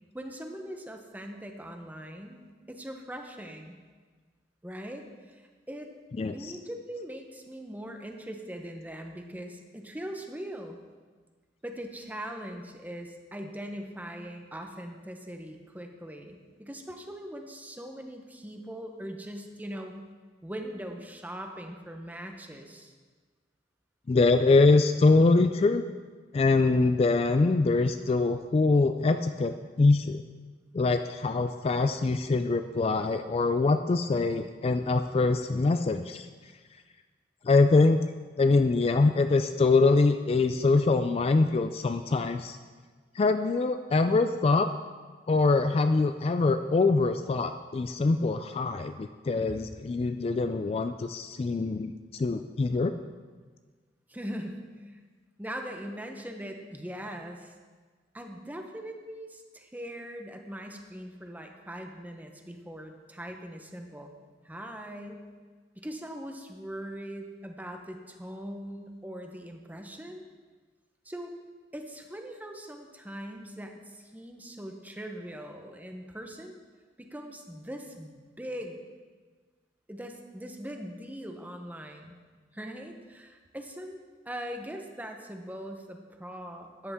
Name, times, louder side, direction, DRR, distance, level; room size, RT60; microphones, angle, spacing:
voice 1, 0.1-2.4 2.7-3.8 4.6-5.9 6.3-10.8 11.6-20.0 20.4-22.9 54.1-55.0 55.4-57.6 58.1-64.1 64.4-65.3 65.8-70.2 71.0-71.3 71.7-76.6 77.0-78.8 79.9-82.2 82.5-86.9, equal, 10° right, 4 dB, 0.9 m, -41 dB
voice 2, 6.2-6.5 24.1-25.8 26.3-30.2 30.7-36.3 37.4-38.0 38.4-42.6 43.2-44.7 45.3-52.9, left 3 dB, 35° left, 8 dB, 0.3 m, -24 dB
13.5 x 9.7 x 3.6 m, 1.5 s
head